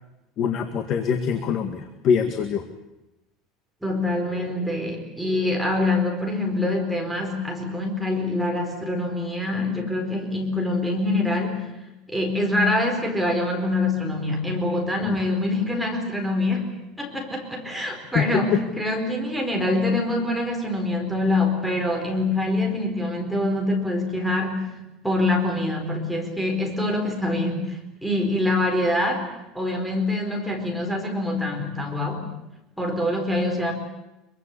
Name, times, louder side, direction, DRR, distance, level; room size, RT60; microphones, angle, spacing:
voice 1, 0.4-2.6 15.0-15.2 18.1-18.3, left 7 dB, 35° left, 7 dB, 2.0 m, -24 dB
voice 2, 3.8-11.7 12.1-16.7 17.0-24.7 25.0-29.2 29.5-32.3 32.8-33.7, left 2 dB, ahead, 1 dB, 4.4 m, -25 dB
25.0 x 23.5 x 8.4 m, 0.96 s
cardioid pair, 170°, 0 cm